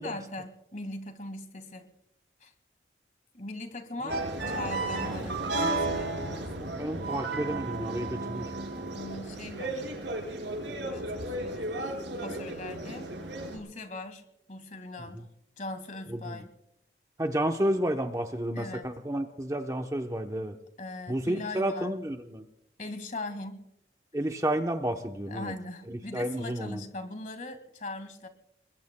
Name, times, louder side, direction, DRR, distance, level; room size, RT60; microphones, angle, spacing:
voice 1, 0.0-1.9 2.4-2.5 3.3-6.7 8.9-9.8 10.8-12.0 12.2-13.1 13.5-14.2 14.5-15.3 15.6-16.5 18.5-18.9 20.8-21.9 22.8-23.6 25.3-28.3, left 2 dB, 45° left, 8 dB, 1.9 m, -40 dB
sound 1, 4.1-13.6, right 2 dB, 80° right, 5.0 m, -33 dB
voice 2, 6.7-8.5 16.1-16.4 17.2-20.5 21.1-22.5 24.1-25.5 25.9-26.8, right 1 dB, 20° right, 5 dB, 0.8 m, -31 dB
29.5 x 21.5 x 2.2 m, 0.82 s
head